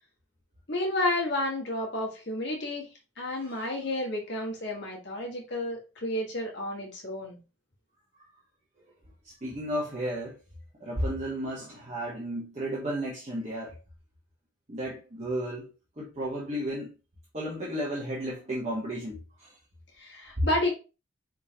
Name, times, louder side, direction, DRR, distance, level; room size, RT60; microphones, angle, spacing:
voice 1, 0.7-2.9 3.2-7.4 20.0-20.7, left 1 dB, 60° left, 1.4 m, -31 dB
voice 2, 3.4-3.7 8.1-8.2 9.2-10.4 10.8-13.8 14.7-15.7 16.0-16.9 17.3-19.6 20.4-20.5, equal, 35° right, 1.1 m, -33 dB
4.6 x 3.6 x 2.8 m
head